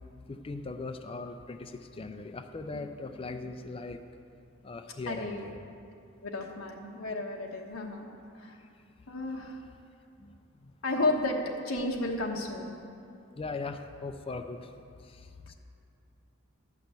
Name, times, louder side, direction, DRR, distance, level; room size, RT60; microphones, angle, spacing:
voice 1, 0.3-4.0 4.6-5.8 9.4-9.7 10.2-10.3 10.6-10.7 13.4-14.7 15.0-15.5, left 3 dB, 25° left, 7 dB, 0.4 m, -40 dB
voice 2, 5.1-5.4 6.2-8.1 8.4-8.6 9.1-9.6 10.8-12.8, left 2 dB, 80° left, 0 dB, 1.1 m, -32 dB
11.5 x 6.0 x 8.1 m, 2.5 s
head